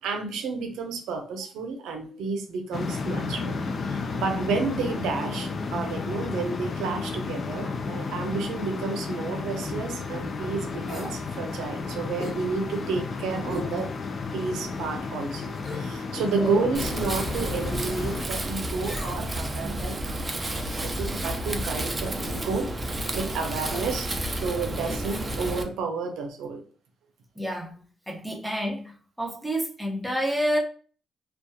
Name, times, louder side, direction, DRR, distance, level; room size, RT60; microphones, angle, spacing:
voice 1, 0.0-3.6 3.9-14.0 14.3-26.6, right 4 dB, 85° right, 0.5 m, -31 dB
sound 1, 2.7-18.3, left 4 dB, 45° left, 0.4 m, -32 dB
sound 2, 10.9-11.2 12.2-12.4 13.5-13.7 14.2-14.3 15.5-15.9 16.8-17.2 18.8-19.4 20.5-20.9 22.2-22.5 23.6-23.9 24.8-25.0 25.3-25.4, right 1 dB, 30° left, 1.4 m, -38 dB
Wind, 16.7-25.6, right 1 dB, 20° right, 0.4 m, -31 dB
voice 2, 27.4-27.8 28.1-30.6, equal, ahead, 0.8 m, -29 dB
2.3 x 2.3 x 2.6 m
cardioid pair, 90°, 0 cm